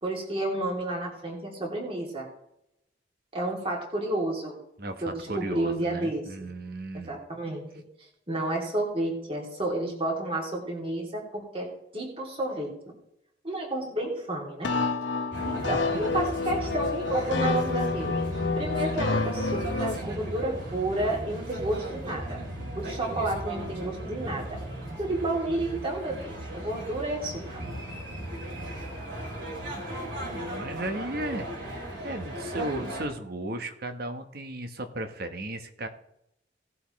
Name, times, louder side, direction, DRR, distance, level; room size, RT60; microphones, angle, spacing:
voice 1, 0.0-2.3 3.3-4.6 5.0-6.2 6.9-11.7 11.9-12.7 13.4-14.7 15.4-18.1 18.6-22.4 22.8-24.5 25.0-27.3, right 2 dB, 30° right, -1 dB, 2.8 m, -31 dB
voice 2, 4.8-7.2 15.3-16.0 29.9-35.9, right 1 dB, 55° right, 7 dB, 1.3 m, -36 dB
sound 1, 14.6-20.0, left 4 dB, 80° left, 1.1 m, -28 dB
sound 2, 15.3-33.1, right 1 dB, 75° right, 4.1 m, -36 dB
17.5 x 7.8 x 3.2 m, 0.79 s
head